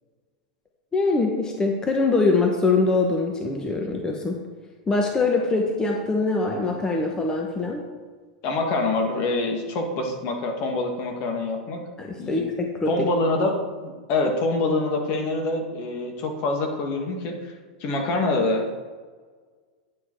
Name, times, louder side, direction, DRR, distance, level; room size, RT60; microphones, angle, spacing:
voice 1, 0.9-4.4 4.9-7.8 12.0-13.1, left 3 dB, 20° left, 2 dB, 1.1 m, -23 dB
voice 2, 8.4-11.8 12.2-12.4 12.9-13.6 13.8-17.5 17.8-18.7, left 2 dB, 50° left, 3 dB, 1.8 m, -25 dB
9.7 x 6.3 x 4.6 m, 1.5 s
hypercardioid pair, 110°, 4 cm